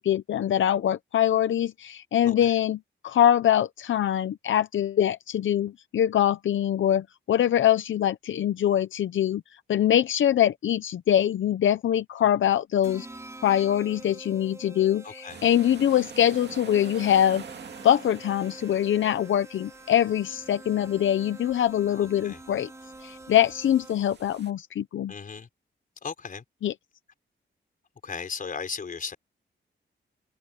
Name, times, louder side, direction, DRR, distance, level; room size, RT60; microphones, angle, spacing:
voice 1, 0.0-9.4 9.7-13.1 13.4-17.4 17.8-22.7 23.0-25.1 26.6-26.7, left 10 dB, 80° left, 0.7 m, -23 dB
voice 2, 2.2-2.6 15.0-15.4 21.9-22.4 25.1-25.5 26.0-26.4 28.0-29.2, left 5 dB, 45° left, 5.0 m, -36 dB
sound 1, 12.8-24.2, right 2 dB, 15° right, 5.2 m, -46 dB
sound 2, 15.3-24.5, right 7 dB, 60° right, 2.4 m, -47 dB
wide cardioid pair, 160°, 20 cm